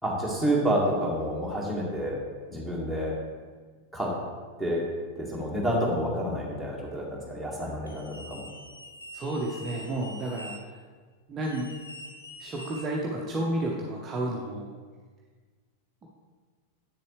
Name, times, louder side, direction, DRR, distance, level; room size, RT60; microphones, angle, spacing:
voice 1, 0.0-2.2 2.5-3.1 3.9-4.1 4.6-4.8 5.2-8.5, equal, 5° left, -3 dB, 1.7 m, -29 dB
sound 1, 7.9-10.6 11.4-13.2, left 1 dB, 80° left, 0.9 m, -45 dB
voice 2, 9.1-10.8 11.3-11.7 12.4-14.7, right 1 dB, 25° right, -2 dB, 0.8 m, -31 dB
8.0 x 6.9 x 3.2 m, 1.5 s
figure-of-eight pair, 90°, 0 cm